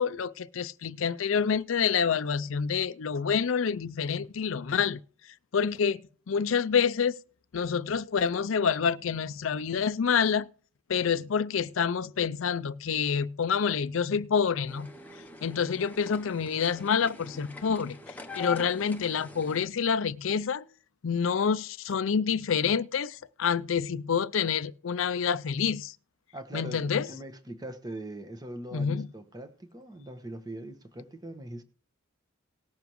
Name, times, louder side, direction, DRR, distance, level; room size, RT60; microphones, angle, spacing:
voice 1, 0.0-5.0 5.5-7.1 7.5-10.5 10.9-14.9 15.4-18.0 18.3-20.7 21.0-25.9 26.5-27.1 28.7-29.1, left 6 dB, 75° left, 0.5 m, -27 dB
sound 1, 14.7-19.6, left 3 dB, 10° left, 0.9 m, -44 dB
voice 2, 26.3-31.6, right 1 dB, 20° right, 1.1 m, -41 dB
19.0 x 7.0 x 3.1 m
head